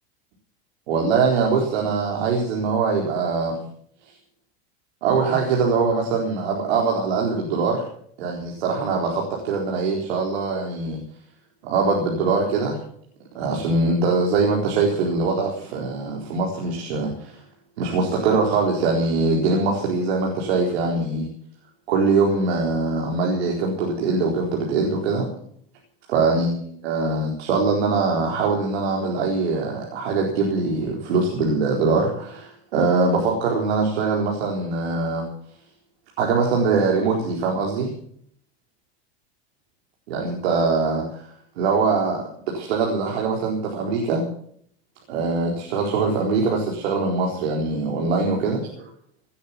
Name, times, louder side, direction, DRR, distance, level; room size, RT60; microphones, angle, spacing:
voice 1, 0.9-3.6 5.0-7.9 8.2-11.0 11.6-12.8 13.3-17.3 17.8-21.3 21.9-25.3 26.1-35.2 36.2-37.9 40.1-41.2 41.6-42.3 42.5-44.3 45.1-48.6, right 4 dB, 85° right, -1 dB, 4.2 m, -22 dB
18.5 x 8.9 x 7.4 m, 0.62 s
supercardioid pair, 105°, 31 cm